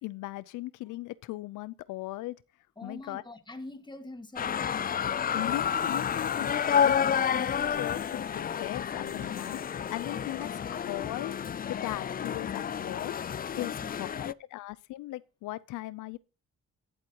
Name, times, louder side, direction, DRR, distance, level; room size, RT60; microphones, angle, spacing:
voice 1, 0.0-2.4 2.8-3.2 5.3-6.9 7.7-11.3 11.7-16.2, left 17 dB, 85° left, 0.6 m, -38 dB
voice 2, 2.8-4.8 6.8-7.2 13.6-13.9, left 2 dB, 15° left, 1.8 m, -44 dB
sound 1, 4.4-14.3, left 8 dB, 30° left, 0.4 m, -30 dB
sound 2, 7.4-13.2, right 4 dB, 55° right, 4.2 m, -62 dB
12.5 x 11.5 x 2.9 m
cardioid pair, 90°, 30 cm